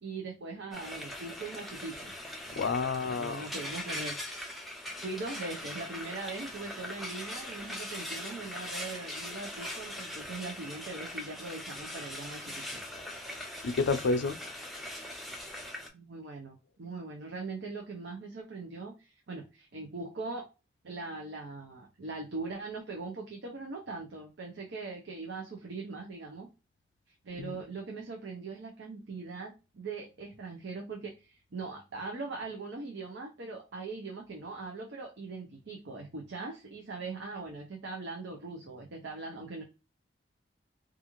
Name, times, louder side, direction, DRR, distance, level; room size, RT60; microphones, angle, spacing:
voice 1, 0.0-2.1 2.4-2.7 3.0-4.4 5.0-12.8 15.9-20.5 20.8-26.5 27.1-39.6, right 3 dB, 75° right, 0.6 m, -41 dB
Frying (food), 0.7-15.9, left 1 dB, ahead, 0.4 m, -41 dB
voice 2, 2.6-3.5 13.6-14.4 27.4-27.6, left 4 dB, 75° left, 0.4 m, -29 dB
2.4 x 2.4 x 3.0 m
head